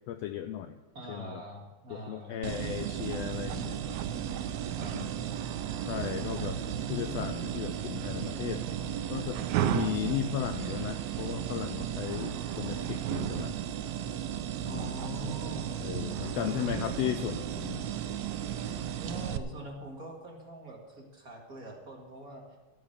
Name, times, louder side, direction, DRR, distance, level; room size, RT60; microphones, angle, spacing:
voice 1, 0.1-0.8 1.1-1.4 1.9-4.0 4.8-5.3 5.9-6.6 6.9-8.7 9.1-9.4 9.7-13.6 14.6-15.0 15.8-17.9, left 11 dB, 80° left, 8 dB, 1.5 m, -36 dB
voice 2, 0.9-2.5 4.4-4.9 6.2-7.3 14.6-15.8 16.4-16.9 19.0-22.6, right 1 dB, 30° right, -1 dB, 2.2 m, -43 dB
sound 1, 2.4-19.4, right 10 dB, 75° right, 1.8 m, -34 dB
13.5 x 9.4 x 6.6 m, 1.2 s
omnidirectional pair, 3.4 m